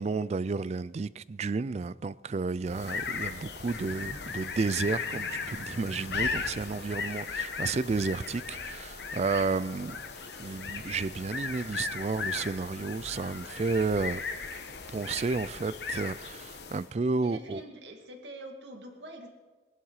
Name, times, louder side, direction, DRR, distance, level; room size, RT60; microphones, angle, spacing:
voice 1, 0.0-10.0 10.4-14.2 14.9-17.6, right 4 dB, 35° right, 0.4 m, -31 dB
sound 1, 2.6-17.0, left 5 dB, 65° left, 1.1 m, -37 dB
voice 2, 17.2-19.3, right 1 dB, 75° right, 2.3 m, -45 dB
20.5 x 11.0 x 4.8 m
head